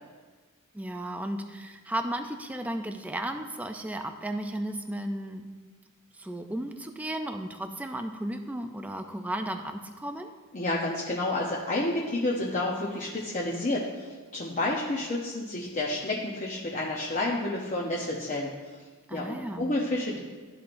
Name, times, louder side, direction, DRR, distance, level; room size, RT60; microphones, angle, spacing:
voice 1, 0.7-5.4 6.1-10.3 19.1-19.7, right 1 dB, 5° right, 5 dB, 0.3 m, -34 dB
voice 2, 10.5-18.5 19.1-20.2, left 2 dB, 35° left, -4 dB, 0.7 m, -30 dB
13.0 x 4.4 x 2.5 m, 1.4 s
head